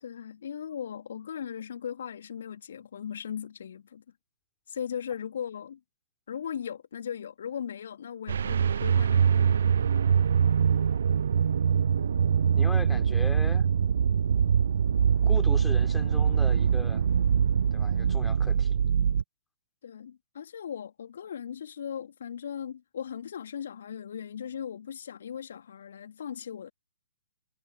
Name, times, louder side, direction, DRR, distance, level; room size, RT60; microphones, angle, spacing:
voice 1, 0.0-4.0 4.7-5.8 6.3-9.5 19.8-26.7, left 8 dB, 55° left, 2.6 m, -38 dB
sound 1, 8.3-19.2, right 7 dB, 60° right, 0.6 m, -23 dB
voice 2, 12.5-13.7 15.2-17.1 17.7-18.7, left 4 dB, 10° left, 3.9 m, -39 dB
figure-of-eight pair, 120°, 0 cm